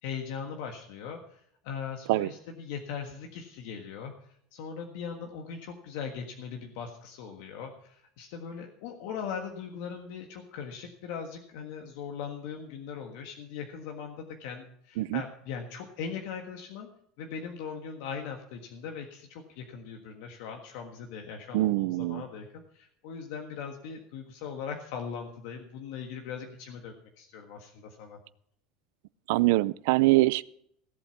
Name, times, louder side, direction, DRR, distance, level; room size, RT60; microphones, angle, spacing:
voice 1, 0.0-4.1 4.5-16.9 17.2-28.2, left 6 dB, 60° left, 3 dB, 1.6 m, -40 dB
voice 2, 21.5-22.2 29.3-30.4, right 19 dB, 65° right, 20 dB, 0.5 m, -24 dB
17.0 x 8.3 x 5.9 m, 0.68 s
cardioid pair, 175°, 0 cm